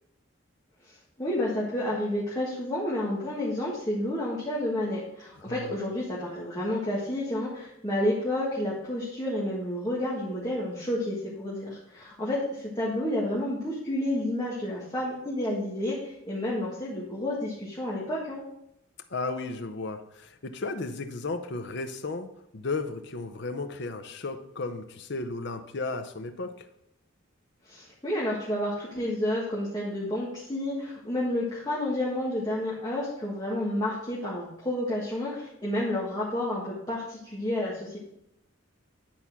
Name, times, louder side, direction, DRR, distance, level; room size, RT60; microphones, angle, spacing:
voice 1, 0.9-18.4 27.6-38.0, left 1 dB, 20° left, -6 dB, 1.6 m, -30 dB
voice 2, 19.1-22.3 22.5-26.7, left 3 dB, 55° left, 8 dB, 0.7 m, -34 dB
10.0 x 4.3 x 6.0 m, 0.79 s
head